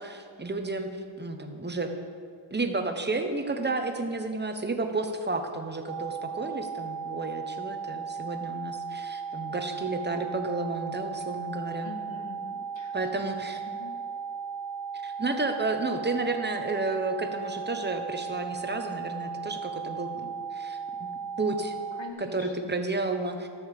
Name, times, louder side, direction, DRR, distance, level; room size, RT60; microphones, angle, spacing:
voice 1, 0.0-1.9 2.5-11.9 12.9-13.6 15.0-20.8 21.4-21.7 22.2-23.5, right 3 dB, 20° right, 5 dB, 1.1 m, -31 dB
sound 1, 5.9-22.1, right 6 dB, 45° right, 0.6 m, -36 dB
voice 2, 11.8-13.2 13.7-14.0 22.0-22.7, left 3 dB, 65° left, 2 dB, 1.9 m, -44 dB
13.0 x 7.0 x 6.8 m, 2.4 s
wide cardioid pair, 125°, 49 cm